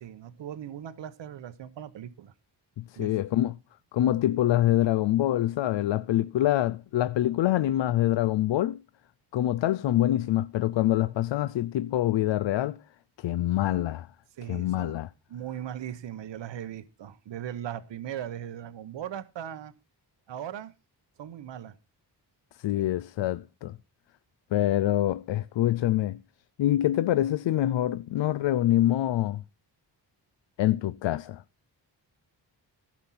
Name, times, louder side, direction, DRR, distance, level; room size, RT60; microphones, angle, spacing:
voice 1, 0.0-2.3 3.0-3.1 14.4-15.0 15.3-19.7 20.3-20.7 21.2-21.7 22.7-22.8, right 10 dB, 80° right, 0.9 m, -38 dB
voice 2, 2.8-3.6 3.9-8.8 9.3-12.8 13.2-14.1 14.5-15.1 22.6-23.8 24.5-26.2 26.6-29.4 30.6-31.4, left 13 dB, 85° left, 0.5 m, -25 dB
15.0 x 6.1 x 5.6 m
wide cardioid pair, 180°, 43 cm